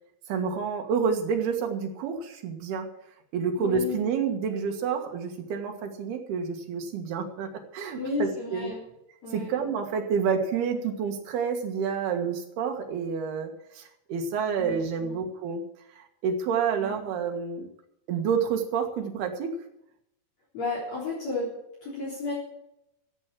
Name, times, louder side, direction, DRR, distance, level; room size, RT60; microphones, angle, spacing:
voice 1, 0.3-2.9 3.3-8.7 9.3-13.5 13.8-15.6 15.9-17.7 18.1-19.5, right 6 dB, 90° right, 4 dB, 3.7 m, -29 dB
voice 2, 3.6-4.0 7.9-8.8 9.2-9.5 14.6-15.2 16.8-17.0 20.5-21.5 21.8-22.3, left 3 dB, 45° left, -7 dB, 4.7 m, -33 dB
14.5 x 8.2 x 7.5 m, 0.81 s
omnidirectional pair, 4.4 m